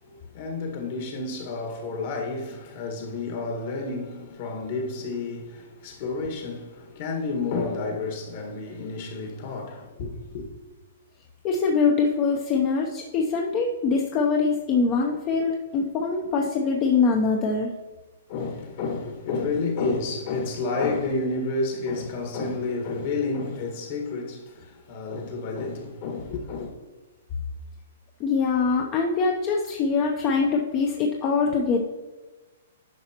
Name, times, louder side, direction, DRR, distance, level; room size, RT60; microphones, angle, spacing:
voice 1, 0.0-10.4 18.3-26.7, left 3 dB, 50° left, 1.7 m, -30 dB
voice 2, 11.4-17.7 28.2-31.8, left 4 dB, 35° left, 0.7 m, -23 dB
10.0 x 5.7 x 3.0 m
hypercardioid pair, 140°, 0 cm